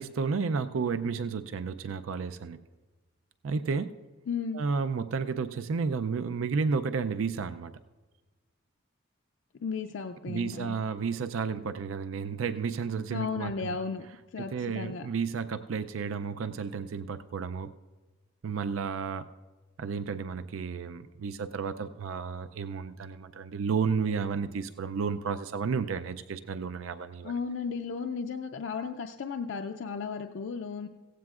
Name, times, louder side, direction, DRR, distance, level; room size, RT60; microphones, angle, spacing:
voice 1, 0.0-2.6 3.4-3.9 4.5-7.7 10.3-13.8 14.5-17.7 18.4-19.3 19.8-27.3, right 5 dB, 85° right, 11 dB, 0.4 m, -32 dB
voice 2, 4.3-4.6 9.6-10.8 13.1-14.1 14.3-15.1 27.2-30.9, left 5 dB, 65° left, 6 dB, 0.4 m, -34 dB
16.5 x 15.0 x 2.4 m, 1.3 s
head